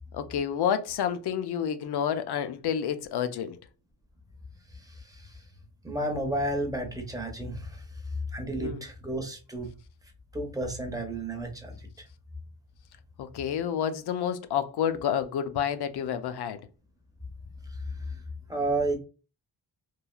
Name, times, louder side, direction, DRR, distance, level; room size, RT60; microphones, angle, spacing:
voice 1, 0.1-3.6 8.6-8.8 13.2-16.7, left 8 dB, 65° left, 0.5 m, -29 dB
voice 2, 4.9-5.2 5.8-7.8 8.3-9.7 10.3-11.7 17.8-18.2 18.5-19.0, right 1 dB, 10° right, 0.5 m, -32 dB
3.1 x 2.3 x 2.3 m
wide cardioid pair, 165°, 42 cm